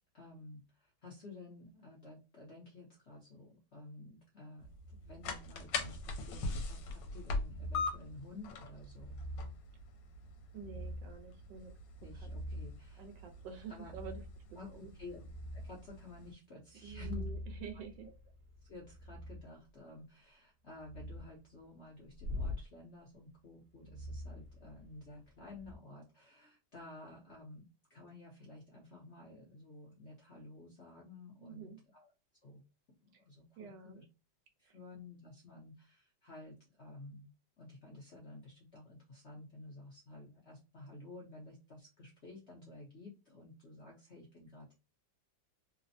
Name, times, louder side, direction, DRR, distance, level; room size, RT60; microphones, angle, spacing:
voice 1, 0.1-4.7 5.0-9.2 12.0-13.0 13.7-13.9 14.6-15.2 15.5-17.2 17.7-17.8 18.7-27.6 27.9-32.1 32.4-32.6 33.0-34.0 34.6-37.3 37.6-44.7, left 2 dB, 55° left, -2 dB, 0.8 m, -52 dB
sound 1, 4.6-16.3, left 3 dB, 80° left, 1.3 m, -43 dB
sound 2, 7.5-8.0 8.9-9.6 10.5-11.2 11.8-12.9 13.8-14.4 14.9-15.8 16.7-19.5 20.8-21.3 22.2-22.6 23.8-25.0 25.5-25.8, left 1 dB, 55° right, 1.0 m, -44 dB
voice 2, 10.5-11.7 12.0-12.6 13.0-14.2 14.5-14.9 16.8-18.1 31.4-31.8 33.1-33.2 33.6-34.0 34.6-34.8, right 6 dB, 75° right, 5 dB, 1.3 m, -49 dB
3.3 x 2.0 x 2.6 m, 0.29 s
omnidirectional pair, 2.0 m